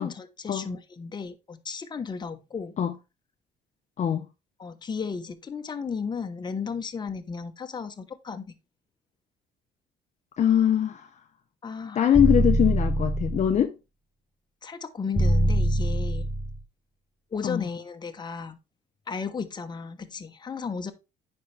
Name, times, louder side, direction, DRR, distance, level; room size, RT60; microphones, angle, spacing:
voice 1, 0.0-2.8 4.6-8.5 11.6-12.1 14.6-16.3 17.3-18.6 19.1-20.9, left 5 dB, 25° left, 1.1 m, -34 dB
voice 2, 10.4-11.1 11.9-13.7 17.4-17.6, left 9 dB, 45° left, 0.8 m, -22 dB
sound 1, 12.1-13.6 15.2-16.6, equal, ahead, 0.7 m, -24 dB
9.4 x 5.4 x 3.4 m
cardioid pair, 110°, 17 cm